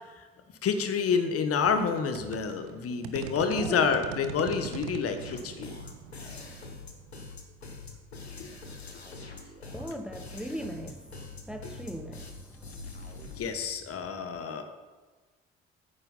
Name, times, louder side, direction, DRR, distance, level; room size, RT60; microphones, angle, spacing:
voice 1, 0.6-5.7 8.4-8.5 13.4-14.6, left 6 dB, 50° left, 8 dB, 1.4 m, -28 dB
sound 1, 1.6-8.1, right 10 dB, 65° right, 0.9 m, -43 dB
voice 2, 3.4-4.1 9.7-12.8, equal, ahead, 8 dB, 1.1 m, -39 dB
sound 2, 5.2-13.6, left 3 dB, 85° left, 1.0 m, -44 dB
12.0 x 9.4 x 5.5 m, 1.3 s
figure-of-eight pair, 45°, 31 cm